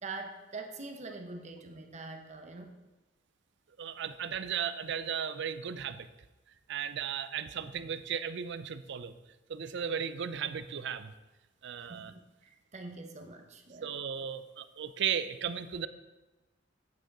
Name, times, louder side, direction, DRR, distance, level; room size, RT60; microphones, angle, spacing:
voice 1, 0.0-2.7 7.6-7.7 11.9-13.9, right 3 dB, 40° right, 5 dB, 0.8 m, -44 dB
voice 2, 3.8-6.1 6.7-9.1 9.5-11.1 11.6-12.1 13.8-15.9, right 8 dB, 65° right, 13 dB, 0.5 m, -35 dB
8.9 x 6.5 x 4.7 m, 1.1 s
head